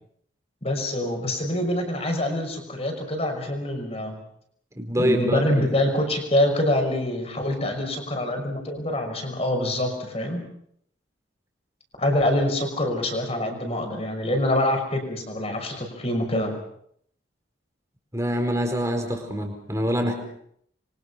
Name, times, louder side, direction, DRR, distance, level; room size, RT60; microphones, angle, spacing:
voice 1, 0.6-4.2 5.0-10.4 12.0-16.5, left 1 dB, 30° left, 4 dB, 6.0 m, -25 dB
voice 2, 4.8-5.7 18.1-20.2, equal, 15° right, 3 dB, 4.5 m, -25 dB
27.5 x 24.0 x 5.8 m, 0.68 s
head